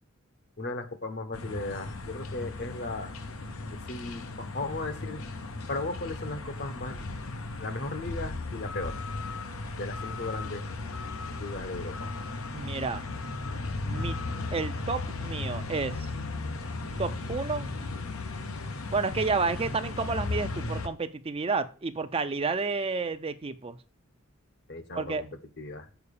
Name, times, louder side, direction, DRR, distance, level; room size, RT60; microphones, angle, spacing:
voice 1, 0.6-3.1 3.7-5.2 5.7-7.1 7.6-9.0 9.8-10.7 11.2-12.1 24.7-25.3 25.6-25.9, left 2 dB, 50° left, 1.0 m, -36 dB
sound 1, 1.3-20.9, left 3 dB, 85° left, 0.9 m, -36 dB
voice 2, 12.5-13.1 13.8-14.2 14.5-16.1 17.0-17.7 18.9-23.8 24.9-25.2, right 4 dB, 25° right, 0.5 m, -30 dB
7.0 x 4.6 x 6.7 m
head